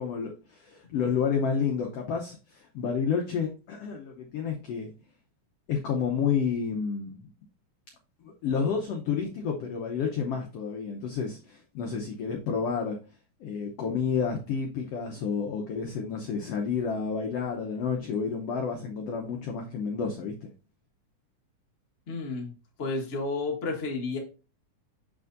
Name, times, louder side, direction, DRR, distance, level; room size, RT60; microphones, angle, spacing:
voice 1, 0.0-4.9 5.7-7.2 8.2-13.0 13.4-20.5, left 6 dB, 75° left, 1 dB, 1.4 m, -30 dB
voice 2, 22.1-22.5 22.8-24.2, left 3 dB, 40° left, 0 dB, 1.0 m, -31 dB
6.8 x 6.0 x 2.6 m, 0.32 s
omnidirectional pair, 3.9 m